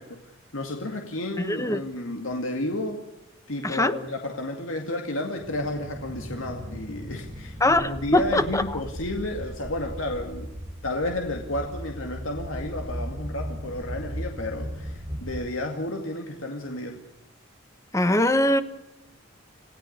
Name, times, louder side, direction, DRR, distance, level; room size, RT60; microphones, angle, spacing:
voice 1, 0.0-3.0 3.5-10.5 10.8-17.0, left 1 dB, 85° left, 3 dB, 2.3 m, -32 dB
voice 2, 1.4-1.8 3.6-4.0 7.6-8.8 17.9-18.6, left 1 dB, 15° left, 11 dB, 1.2 m, -22 dB
sound 1, 5.4-15.4, equal, 15° right, 5.1 m, -37 dB
28.0 x 16.5 x 6.7 m, 0.88 s
head